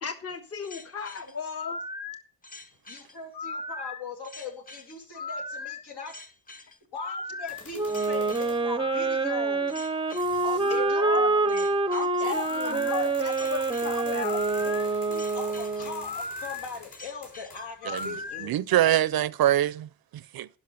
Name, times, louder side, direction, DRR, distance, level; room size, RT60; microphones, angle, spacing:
voice 1, 0.0-1.8 10.7-11.6 11.9-14.3, left 4 dB, 35° left, 1.4 m, -34 dB
sound 1, 0.6-18.5, left 3 dB, 20° left, 0.8 m, -38 dB
voice 2, 2.9-6.1 6.9-9.9 10.4-11.8 12.2-13.1 13.4-13.5 13.8-19.0, left 4 dB, 70° left, 3.0 m, -40 dB
sound 2, 7.5-8.8 9.7-9.8 10.2-10.9 12.2-18.3, left 3 dB, 55° left, 4.8 m, -47 dB
Wind instrument woodwind instrument, 7.8-16.1, right 3 dB, 15° right, 0.6 m, -26 dB
voice 3, 18.4-20.5, right 12 dB, 60° right, 0.6 m, -24 dB
11.5 x 5.6 x 6.5 m
cardioid pair, 110°, 41 cm